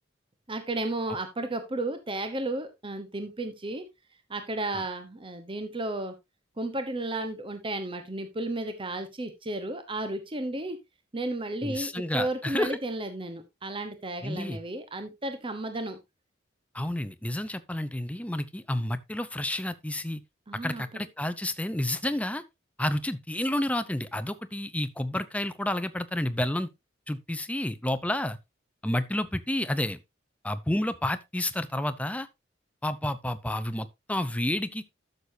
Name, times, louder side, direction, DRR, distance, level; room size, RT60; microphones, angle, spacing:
voice 1, 0.5-3.8 4.3-6.1 6.6-10.8 11.1-16.0 20.5-20.8, right 2 dB, 25° right, 1.0 m, -33 dB
voice 2, 11.6-12.8 14.2-14.6 16.7-20.2 20.6-22.4 22.8-26.7 27.1-28.4 28.8-30.0 30.4-32.3 32.8-34.8, left 1 dB, 5° left, 0.6 m, -30 dB
12.5 x 6.7 x 2.7 m
head